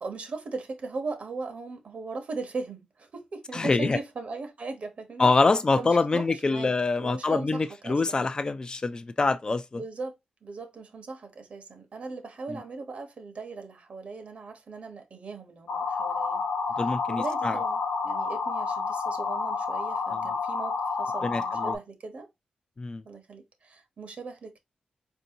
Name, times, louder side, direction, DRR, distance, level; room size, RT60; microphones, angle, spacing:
voice 1, 0.0-5.3 5.8-6.7 7.0-8.2 9.7-16.4 17.1-22.3 23.0-24.6, right 3 dB, 55° right, 0.9 m, -38 dB
voice 2, 3.5-4.0 5.2-9.8 12.5-12.6 16.8-17.6 20.1-20.3 21.2-21.7 22.8-23.0, left 3 dB, 30° left, 0.4 m, -25 dB
sound 1, 15.7-21.8, left 4 dB, 90° left, 0.6 m, -29 dB
4.3 x 2.7 x 2.7 m
cardioid pair, 90°, 3 cm